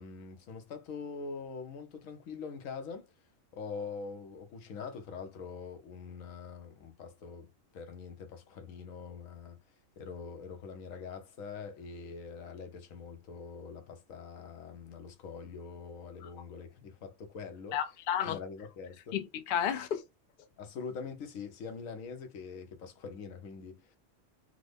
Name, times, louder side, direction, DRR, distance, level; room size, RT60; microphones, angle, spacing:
voice 1, 0.0-3.1 3.5-9.6 10.0-17.8 18.2-19.2 20.6-24.0, left 5 dB, 85° left, 1.1 m, -44 dB
voice 2, 17.7-18.4 19.1-20.0, left 9 dB, 60° left, 0.6 m, -32 dB
3.7 x 2.0 x 3.4 m
omnidirectional pair, 1.4 m